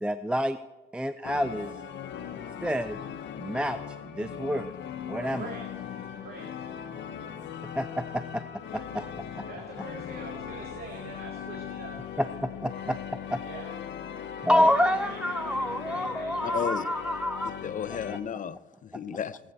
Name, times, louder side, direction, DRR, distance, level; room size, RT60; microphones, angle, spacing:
voice 1, 0.0-0.6 0.9-1.7 2.6-3.0 3.4-3.8 4.1-4.7 5.1-5.5 7.7-8.0 8.7-9.1 12.2-13.0 13.3-13.4 14.4-17.5 18.1-18.2, equal, 5° right, 11 dB, 0.4 m, -28 dB
sound 1, 1.2-18.2, left 8 dB, 65° left, 1.0 m, -39 dB
voice 2, 5.2-5.6 6.2-6.5 9.5-11.9 13.4-13.7 14.6-16.6, right 3 dB, 50° right, -1 dB, 2.2 m, -43 dB
voice 3, 16.4-16.8 17.6-19.4, left 8 dB, 40° left, 14 dB, 0.6 m, -33 dB
19.0 x 8.1 x 4.3 m, 1.1 s
cardioid pair, 90°, 20 cm